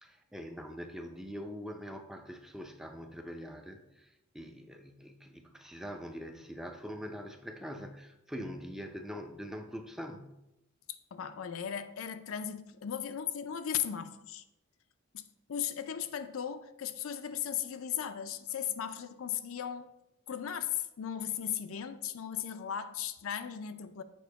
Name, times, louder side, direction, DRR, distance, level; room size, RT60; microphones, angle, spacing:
voice 1, 0.0-10.4, equal, ahead, 0.5 m, -43 dB
voice 2, 10.9-14.4 15.1-19.9 20.3-24.0, left 9 dB, 75° left, 0.5 m, -37 dB
7.1 x 4.5 x 4.6 m
head